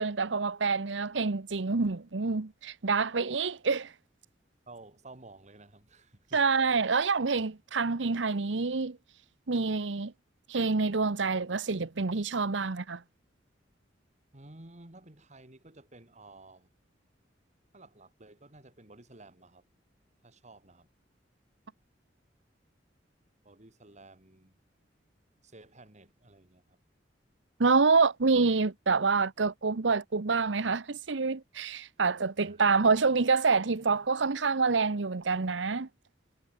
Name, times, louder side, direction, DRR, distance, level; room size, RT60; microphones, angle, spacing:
voice 1, 0.0-3.9 6.3-9.0 9.5-10.1 10.5-13.0 27.6-35.9, right 4 dB, 80° right, 0.9 m, -27 dB
voice 2, 4.7-6.8 14.3-16.7 17.7-19.6 20.2-20.9 23.4-24.6 25.4-26.8 32.4-32.6 33.8-34.0, right 2 dB, 40° right, 3.1 m, -53 dB
head